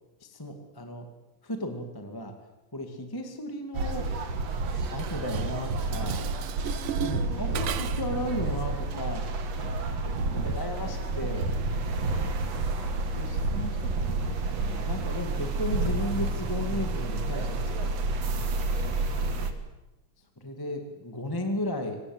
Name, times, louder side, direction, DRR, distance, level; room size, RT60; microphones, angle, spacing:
voice 1, 0.2-1.1 1.4-2.3 2.7-4.1 4.9-6.2 7.0-9.3 9.9-11.5 13.2-17.9 19.3-19.5 20.4-22.0, left 1 dB, 10° left, 5 dB, 1.6 m, -35 dB
sound 1, 3.7-19.5, right 3 dB, 55° right, 2.6 m, -30 dB
Dishes pots and pans, 4.8-8.2, right 11 dB, 75° right, 1.3 m, -37 dB
voice 2, 6.9-7.7 9.8-10.6 18.3-19.3, right 1 dB, 50° left, 0 dB, 8.5 m, -47 dB
25.0 x 19.0 x 8.0 m, 0.98 s
omnidirectional pair, 3.8 m